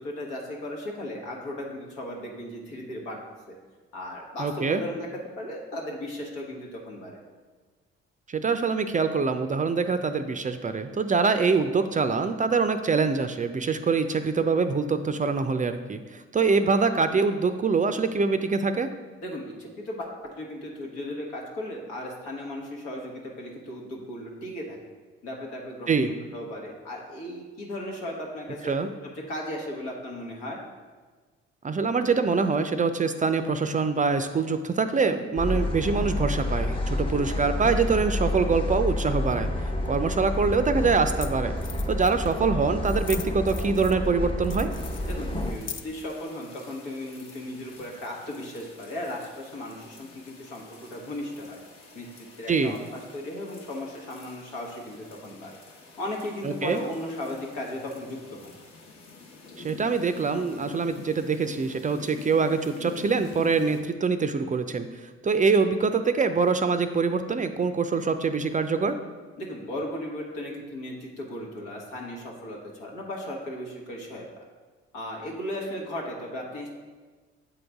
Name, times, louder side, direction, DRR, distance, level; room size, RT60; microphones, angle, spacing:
voice 1, 0.0-3.2 3.5-3.6 3.9-5.1 5.4-7.2 19.2-20.1 20.4-24.8 25.2-26.1 26.3-28.7 29.3-30.6 45.1-51.6 51.9-55.6 56.0-58.5 69.4-74.3 74.9-76.7, left 1 dB, 85° left, -1 dB, 1.3 m, -36 dB
voice 2, 4.4-4.8 8.3-18.9 25.9-26.1 28.6-28.9 31.6-39.5 39.9-41.5 41.8-44.7 52.5-52.7 56.4-56.8 59.6-64.9 65.2-69.0, right 4 dB, 25° right, 9 dB, 0.4 m, -24 dB
sound 1, 35.4-45.5, left 1 dB, 15° left, 0.9 m, -29 dB
sound 2, 40.9-41.0 41.2-41.3 41.6-42.4 42.8-44.1 44.4-46.1, left 8 dB, 40° left, 0.5 m, -40 dB
sound 3, 44.7-63.8, left 3 dB, 60° left, 1.2 m, -47 dB
7.7 x 3.9 x 3.5 m, 1.4 s
hypercardioid pair, 50°, 30 cm